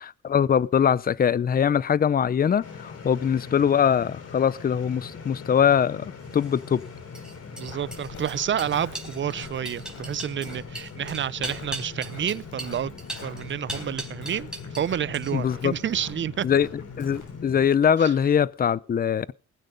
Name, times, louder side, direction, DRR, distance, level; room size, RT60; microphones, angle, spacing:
voice 1, 0.0-6.8 15.3-15.7 16.4-19.3, left 8 dB, 30° left, 0.6 m, -22 dB
sound 1, 2.6-17.7, left 5 dB, 55° left, 3.3 m, -41 dB
sound 2, 6.3-14.9 15.1-15.6, right 1 dB, ahead, 4.2 m, -39 dB
voice 2, 7.5-12.9 13.2-16.5 18.0-18.1, right 9 dB, 40° right, 0.6 m, -29 dB
Walk footsteps, 7.6-17.4, left 3 dB, 75° left, 7.5 m, -47 dB
20.0 x 8.8 x 5.3 m
cardioid pair, 90°, 30 cm